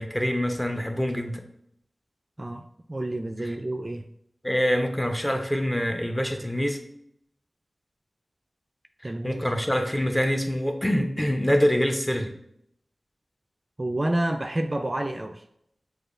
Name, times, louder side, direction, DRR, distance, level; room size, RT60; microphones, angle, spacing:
voice 1, 0.0-1.4 4.4-6.8 9.0-12.3, equal, 10° left, 5 dB, 0.6 m, -25 dB
voice 2, 2.4-4.0 9.0-9.4 13.8-15.4, right 1 dB, 35° right, 6 dB, 0.3 m, -29 dB
6.7 x 2.3 x 2.5 m, 0.73 s
wide cardioid pair, 50°, 0 cm